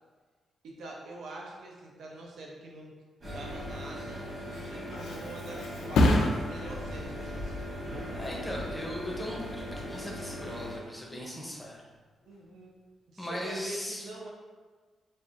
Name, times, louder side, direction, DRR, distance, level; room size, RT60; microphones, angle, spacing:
voice 1, 0.6-2.9 3.2-8.2 12.3-12.7 13.1-14.3, right 2 dB, 70° right, -2 dB, 0.5 m, -45 dB
sound 1, 3.2-10.8, equal, 30° right, 1.1 m, -39 dB
Thump thud, 4.5-11.8 12.2-12.7, left 1 dB, 90° left, 0.5 m, -32 dB
voice 2, 8.1-11.8 13.2-14.0, equal, 5° left, -3 dB, 0.6 m, -38 dB
5.3 x 2.5 x 2.5 m, 1.4 s
wide cardioid pair, 180°, 0 cm